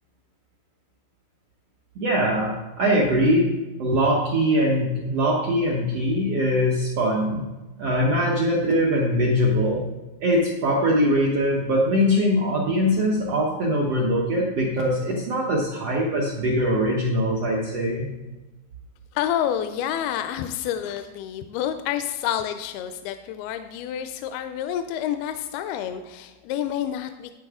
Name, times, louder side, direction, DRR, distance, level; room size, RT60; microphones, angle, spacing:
voice 1, 1.9-3.5 3.8-7.5 7.8-9.8 10.2-18.1, equal, 75° right, -2 dB, 1.4 m, -22 dB
voice 2, 19.1-27.3, left 10 dB, 85° left, 9 dB, 2.4 m, -28 dB
11.5 x 9.1 x 3.6 m, 1.1 s
omnidirectional pair, 4.5 m